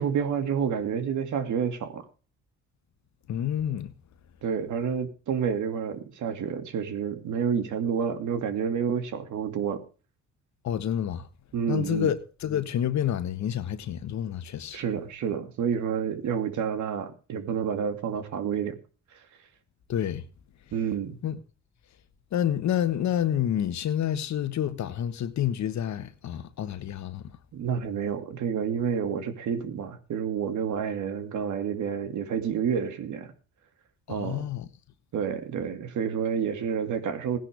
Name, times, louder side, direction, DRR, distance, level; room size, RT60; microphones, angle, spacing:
voice 1, 0.0-2.0 4.4-9.8 11.5-12.1 14.7-18.8 20.7-21.2 27.5-33.3 34.1-34.4 35.1-37.4, right 7 dB, 75° right, 2.4 m, -29 dB
voice 2, 3.3-3.9 10.6-11.3 11.7-14.8 19.9-20.2 21.2-21.4 22.3-27.3 34.1-34.7, left 10 dB, 65° left, 1.4 m, -28 dB
17.0 x 10.5 x 3.5 m
cardioid pair, 90°, 30 cm